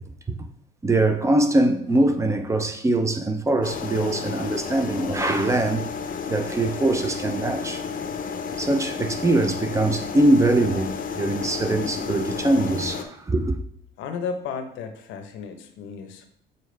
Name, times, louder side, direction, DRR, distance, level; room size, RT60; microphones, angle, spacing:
voice 1, 0.8-5.8 6.3-7.8 8.5-13.5, right 2 dB, 15° right, 0.6 m, -22 dB
sound 1, 3.6-13.0, left 6 dB, 45° left, 0.7 m, -32 dB
voice 2, 14.0-16.3, left 5 dB, 85° left, 0.9 m, -33 dB
6.8 x 4.5 x 3.3 m
cardioid pair, 130°, 20 cm